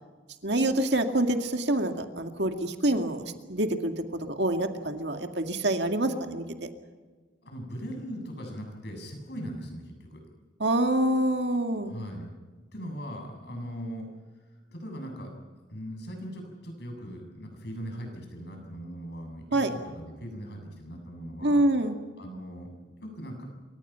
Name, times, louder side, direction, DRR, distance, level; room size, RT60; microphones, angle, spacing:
voice 1, 0.4-6.7 10.6-11.9 19.5-19.7 21.4-21.9, right 1 dB, 60° right, 5 dB, 2.2 m, -26 dB
voice 2, 7.4-10.2 11.8-12.3 12.7-14.1 14.5-15.3 15.7-21.6 22.2-22.7 23.0-23.4, equal, 60° left, 3 dB, 7.4 m, -39 dB
27.5 x 24.5 x 5.8 m, 1.4 s
head